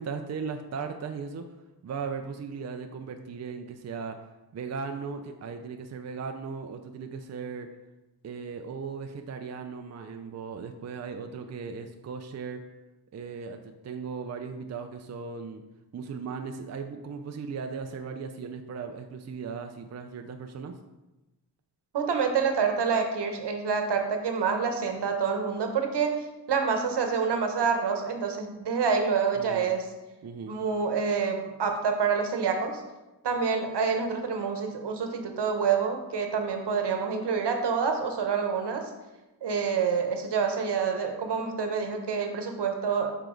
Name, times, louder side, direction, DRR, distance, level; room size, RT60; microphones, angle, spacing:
voice 1, 0.0-1.4 1.8-4.2 4.5-7.7 8.2-12.6 13.1-15.6 15.9-20.7 29.4-29.7 30.2-30.5, right 5 dB, 40° right, 5 dB, 0.5 m, -37 dB
voice 2, 21.9-29.9 30.4-32.8 33.2-38.9 39.4-43.2, right 5 dB, 75° right, 5 dB, 1.0 m, -27 dB
6.8 x 4.6 x 3.8 m, 1.0 s
wide cardioid pair, 105°, 41 cm